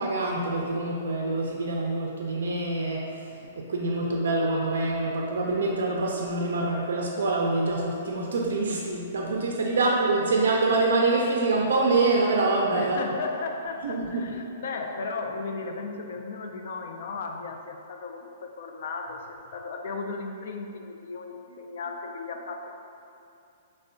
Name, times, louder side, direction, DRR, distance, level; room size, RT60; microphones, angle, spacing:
voice 1, 0.0-13.1 13.8-14.8, right 2 dB, 80° right, -1 dB, 0.3 m, -26 dB
voice 2, 12.7-22.7, left 4 dB, 65° left, 4 dB, 0.3 m, -35 dB
4.2 x 2.1 x 2.5 m, 2.7 s
hypercardioid pair, 140°, 0 cm